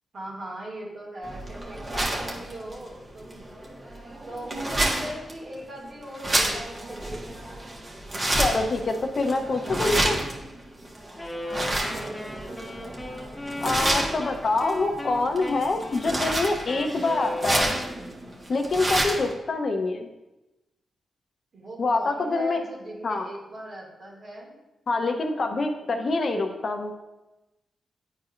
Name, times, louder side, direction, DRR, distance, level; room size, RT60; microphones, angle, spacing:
voice 1, 0.1-3.4 4.3-7.3 11.4-13.0 21.5-24.5 25.8-26.0, right 1 dB, 65° right, -3 dB, 2.2 m, -40 dB
sound 1, 1.2-19.3, right 1 dB, 40° right, 1.5 m, -30 dB
voice 2, 8.3-10.2 13.6-17.7 18.5-20.1 21.8-22.6 23.0-23.3 24.9-26.9, left 3 dB, 60° left, 4 dB, 0.8 m, -25 dB
Wind instrument woodwind instrument, 11.2-18.1, left 1 dB, 15° left, 1.0 m, -37 dB
10.0 x 4.3 x 2.5 m, 1.0 s
supercardioid pair, 45°, 0 cm